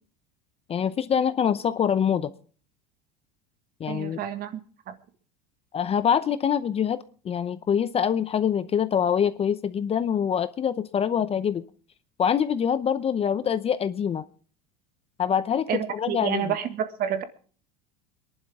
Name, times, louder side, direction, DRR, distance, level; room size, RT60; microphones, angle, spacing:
voice 1, 0.7-2.3 3.8-4.2 5.7-7.0 7.2-11.6 12.2-14.2 15.2-16.5, left 8 dB, 30° left, 14 dB, 0.7 m, -25 dB
voice 2, 3.9-4.6 4.9-5.0 15.7-17.2, right 9 dB, 45° right, 9 dB, 1.8 m, -29 dB
24.0 x 11.0 x 3.6 m, 0.43 s
supercardioid pair, 110°, 21 cm